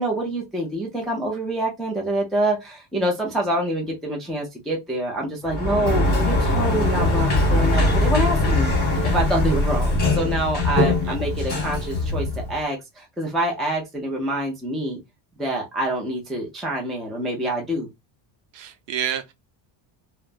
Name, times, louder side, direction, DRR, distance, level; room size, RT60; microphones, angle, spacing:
voice 1, 0.0-8.7 9.0-15.0 15.4-17.9, right 1 dB, ahead, 0.3 m, -26 dB
Sliding door, 5.4-12.6, left 2 dB, 20° left, 1.1 m, -21 dB
voice 2, 18.5-19.3, right 9 dB, 65° right, 0.7 m, -29 dB
3.2 x 2.0 x 2.4 m
cardioid pair, 165°, 47 cm